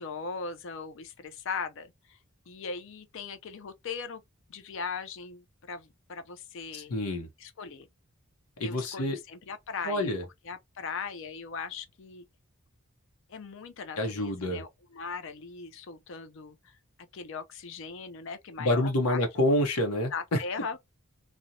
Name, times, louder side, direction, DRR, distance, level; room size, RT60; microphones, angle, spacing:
voice 1, 0.0-2.2 2.5-4.2 4.5-6.9 7.4-7.9 8.6-10.1 10.4-12.3 13.3-16.8 17.1-19.2 20.1-20.8, left 5 dB, 60° left, 0.4 m, -39 dB
voice 2, 6.7-7.3 8.6-9.2 9.9-10.2 14.0-14.6 18.6-20.4, left 1 dB, 90° left, 0.7 m, -27 dB
2.6 x 2.1 x 2.7 m
head